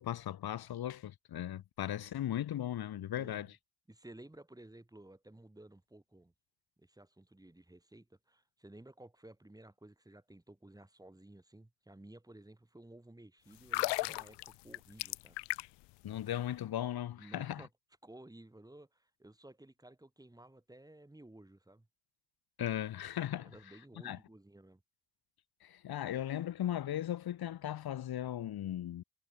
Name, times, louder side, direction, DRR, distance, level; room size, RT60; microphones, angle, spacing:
voice 1, 0.0-3.5 16.0-17.6 22.6-23.6 24.0-24.2 25.6-29.0, left 11 dB, 60° left, 1.8 m, -37 dB
voice 2, 3.1-3.5 3.9-6.3 6.8-15.4 17.2-17.7 18.0-21.9 23.4-24.8, right 1 dB, 10° right, 3.2 m, -55 dB
sound 1, 13.6-15.9 16.2-16.4, left 21 dB, 80° left, 0.6 m, -36 dB
cardioid pair, 90°, 42 cm